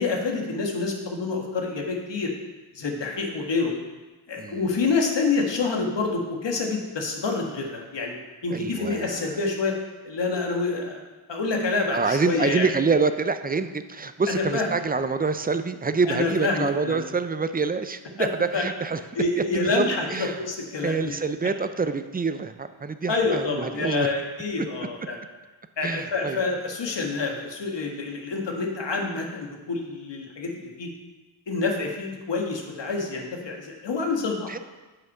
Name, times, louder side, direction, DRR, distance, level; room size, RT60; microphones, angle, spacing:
voice 1, 0.0-2.3 2.7-3.7 4.3-8.1 8.4-9.8 10.0-11.0 11.3-12.7 14.3-14.7 16.1-17.0 18.2-18.3 18.5-18.6 19.1-21.2 23.1-25.2 25.8-30.9 31.5-34.5, left 3 dB, 60° left, 1 dB, 1.6 m, -27 dB
voice 2, 4.4-4.7 8.5-9.4 11.9-19.0 19.4-20.4 20.8-24.1 25.8-26.4 34.5-34.6, right 4 dB, 20° right, 10 dB, 0.4 m, -26 dB
7.8 x 5.9 x 5.5 m, 1.2 s
cardioid pair, 80°, 48 cm